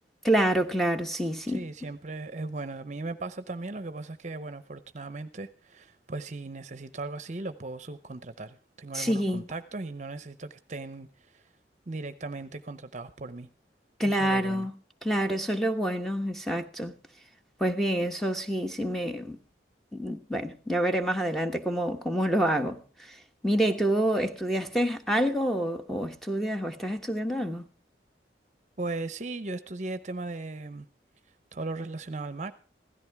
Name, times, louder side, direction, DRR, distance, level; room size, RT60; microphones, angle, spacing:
voice 1, 0.2-1.6 8.9-9.5 14.0-14.7 15.0-16.9 17.6-19.4 19.9-22.8 23.1-23.2 23.4-27.6, right 1 dB, ahead, 1.1 m, -27 dB
voice 2, 1.5-11.1 11.3-11.4 11.9-13.5 14.0-14.7 28.8-30.9 31.5-32.5, right 3 dB, 40° right, 0.8 m, -37 dB
16.5 x 14.0 x 3.5 m
head